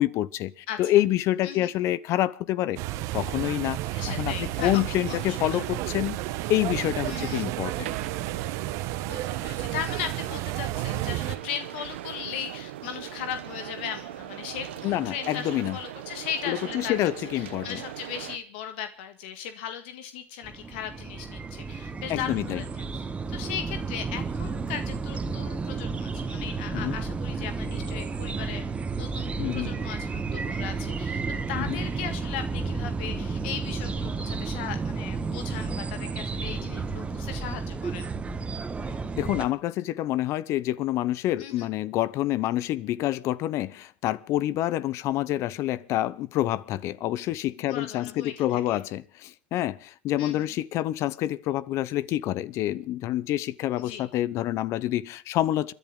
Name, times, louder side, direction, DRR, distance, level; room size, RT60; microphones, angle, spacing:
voice 1, 0.0-2.8 3.1-6.2 6.5-7.9 14.8-15.8 16.5-17.8 22.1-22.6 26.7-27.0 29.4-29.7 31.6-31.8 39.2-55.7, left 14 dB, 55° left, 0.8 m, -27 dB
voice 2, 0.7-1.0 1.4-1.7 3.9-4.8 5.1-5.7 7.0-7.5 9.0-17.0 17.3-28.7 29.0-31.2 31.5-38.1 41.4-41.7 47.7-48.8 50.2-50.5 53.8-54.1, left 9 dB, 75° left, 1.8 m, -37 dB
sound 1, 2.8-11.4, right 15 dB, 60° right, 1.3 m, -32 dB
sound 2, 4.5-18.4, right 13 dB, 85° right, 1.2 m, -40 dB
sound 3, 20.4-39.5, right 4 dB, 20° right, 1.7 m, -32 dB
30.0 x 11.0 x 3.8 m
supercardioid pair, 105°, 6 cm